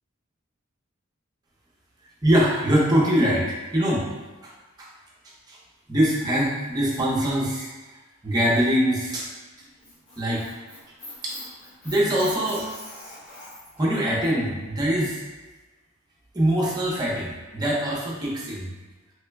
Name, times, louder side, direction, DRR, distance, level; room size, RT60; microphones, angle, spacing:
voice 1, 2.2-4.0 4.8-4.9 5.5-5.6 5.9-7.7 8.2-9.3 10.2-10.4 11.2-11.4 11.8-12.6 13.8-15.2 16.3-18.7, equal, 20° right, -5 dB, 0.6 m, -23 dB
Squeak, 9.6-13.8, left 1 dB, 35° left, 1.0 m, -43 dB
3.0 x 2.1 x 3.3 m, 1.2 s
head